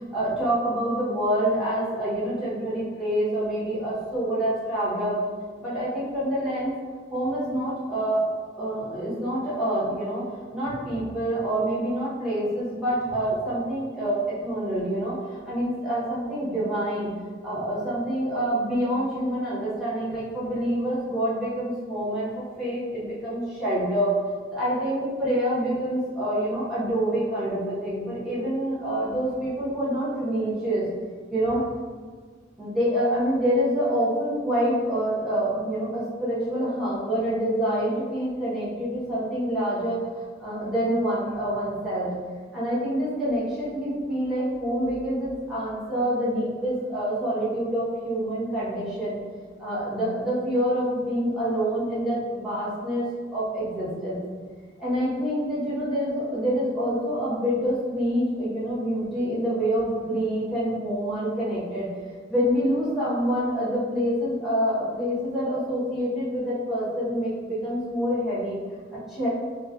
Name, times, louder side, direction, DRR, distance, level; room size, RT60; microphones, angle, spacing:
voice 1, 0.1-5.2 5.6-6.7 7.1-8.2 8.6-10.2 10.5-17.1 17.4-24.1 24.5-30.9 31.3-31.7 32.6-42.1 42.5-49.2 49.6-53.0 53.3-54.2 54.8-61.9 62.3-68.6 69.1-69.3, equal, ahead, -11 dB, 0.8 m, -26 dB
2.4 x 2.3 x 2.3 m, 1.5 s
head